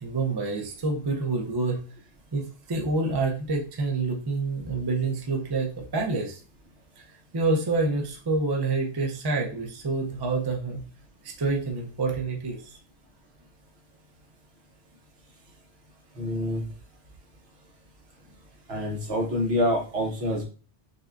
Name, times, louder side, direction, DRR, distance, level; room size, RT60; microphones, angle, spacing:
voice 1, 0.0-1.8 2.3-6.4 7.0-7.1 7.3-10.8 11.2-12.6, right 3 dB, 30° right, 0 dB, 0.5 m, -27 dB
voice 2, 16.2-16.6 18.7-20.4, left 1 dB, 65° right, 1 dB, 1.3 m, -26 dB
6.4 x 2.3 x 2.5 m, 0.38 s
omnidirectional pair, 1.2 m